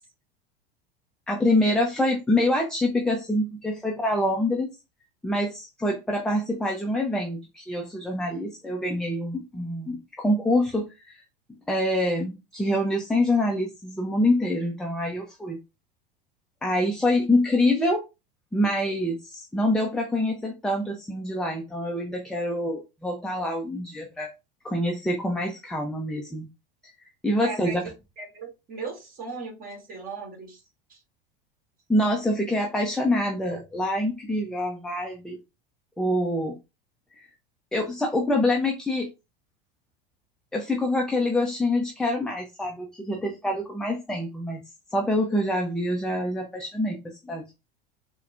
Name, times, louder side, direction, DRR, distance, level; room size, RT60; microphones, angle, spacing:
voice 1, 1.3-4.7 5.2-11.2 11.7-15.6 16.6-18.0 18.5-24.3 24.6-26.5 26.8-26.9 27.2-27.8 31.9-35.4 36.0-36.6 37.2-37.3 37.7-39.1 40.5-44.6 44.9-47.5, left 1 dB, ahead, 0.4 m, -26 dB
voice 2, 27.4-27.9 28.2-30.6 30.9-31.0, right 4 dB, 30° right, 1.7 m, -37 dB
4.1 x 2.1 x 2.5 m
figure-of-eight pair, 80°, 29 cm